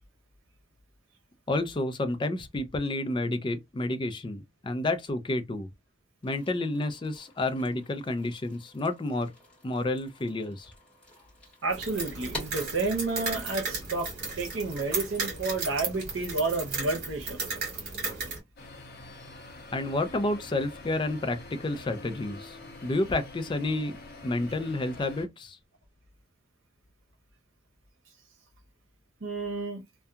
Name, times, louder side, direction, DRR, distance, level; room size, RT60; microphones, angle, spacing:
voice 1, 1.5-5.7 6.2-9.3 9.6-10.7 19.7-24.0 24.2-25.6, left 2 dB, 25° left, 0.3 m, -30 dB
sound 1, 6.2-13.1, left 1 dB, 5° left, 1.4 m, -48 dB
voice 2, 11.6-14.1 14.4-17.4 29.2-29.8, right 3 dB, 80° right, 0.8 m, -30 dB
sound 2, 11.7-18.4, right 3 dB, 50° right, 1.4 m, -35 dB
sound 3, 18.6-25.2, left 2 dB, 50° left, 0.7 m, -46 dB
2.7 x 2.2 x 2.3 m
head